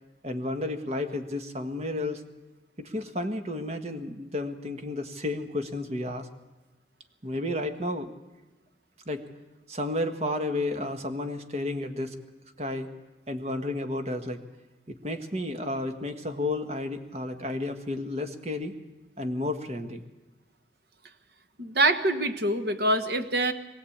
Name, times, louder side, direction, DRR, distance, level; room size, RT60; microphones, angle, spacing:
voice 1, 0.2-2.2 2.8-6.3 7.2-8.1 9.1-9.2 9.7-12.1 12.6-12.9 13.3-14.4 14.9-18.8 19.2-20.0, left 1 dB, 35° right, 7 dB, 1.5 m, -32 dB
voice 2, 21.6-23.5, right 2 dB, 60° right, 10 dB, 1.4 m, -25 dB
23.0 x 16.0 x 8.7 m, 1.1 s
head